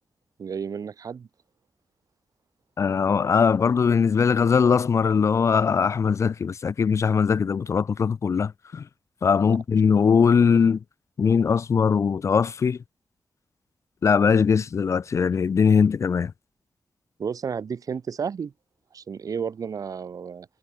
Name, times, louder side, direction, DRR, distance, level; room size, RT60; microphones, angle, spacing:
voice 1, 0.4-1.3 9.5-9.6 17.2-18.5 18.9-20.5, right 6 dB, 65° right, 5.7 m, -32 dB
voice 2, 2.8-8.8 9.2-10.8 11.2-12.8 14.0-16.3, left 6 dB, 50° left, 0.5 m, -21 dB
wide cardioid pair, 170°, 7 cm